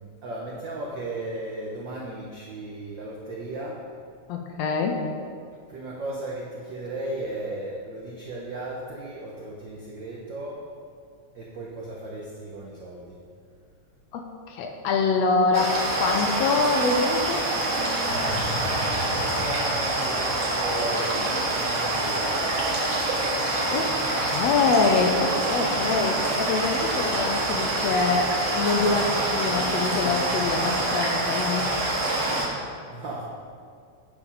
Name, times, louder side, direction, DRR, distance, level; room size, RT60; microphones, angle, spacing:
voice 1, 0.0-3.9 5.7-10.7 11.3-13.2 19.1-22.6 32.9-33.3, right 1 dB, 80° right, -3 dB, 1.0 m, -36 dB
voice 2, 4.3-5.0 14.1-17.5 22.8-23.3 23.7-31.7, left 4 dB, 75° left, 3 dB, 1.7 m, -25 dB
sound 1, 15.5-32.5, right 2 dB, 60° right, 2.5 m, -26 dB
sound 2, 18.1-21.6, left 1 dB, 55° left, 1.4 m, -37 dB
9.5 x 5.2 x 5.5 m, 2.2 s
omnidirectional pair, 3.4 m